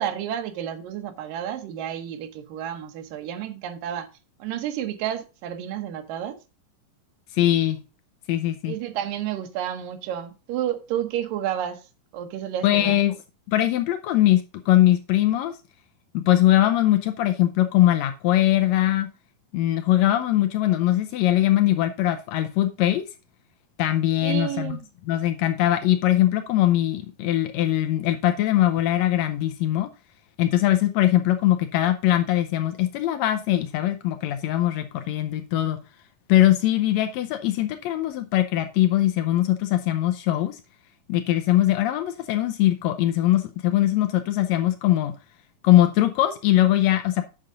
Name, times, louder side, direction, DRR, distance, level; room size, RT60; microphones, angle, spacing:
voice 1, 0.0-4.1 4.4-6.4 8.7-11.8 12.1-13.0 24.2-24.8, right 10 dB, 80° right, 2.6 m, -30 dB
voice 2, 7.3-7.8 8.3-8.7 12.6-13.1 13.5-15.5 16.1-19.1 19.5-23.0 23.8-24.8 25.1-29.9 30.4-35.8 36.3-40.6 41.1-45.1 45.6-47.2, left 14 dB, 85° left, 1.5 m, -21 dB
8.7 x 6.6 x 3.7 m
omnidirectional pair, 3.9 m